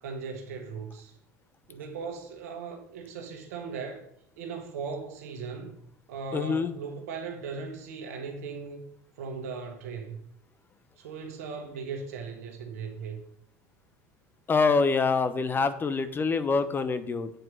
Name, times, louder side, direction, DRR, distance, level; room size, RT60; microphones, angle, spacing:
voice 1, 0.0-1.1 1.7-4.0 4.4-5.7 6.1-8.8 9.2-10.2 11.0-13.2, right 5 dB, 80° right, 1.2 m, -38 dB
voice 2, 6.3-6.7 14.5-17.3, left 4 dB, 25° left, 0.8 m, -25 dB
7.9 x 4.6 x 6.2 m
hypercardioid pair, 90°, 8 cm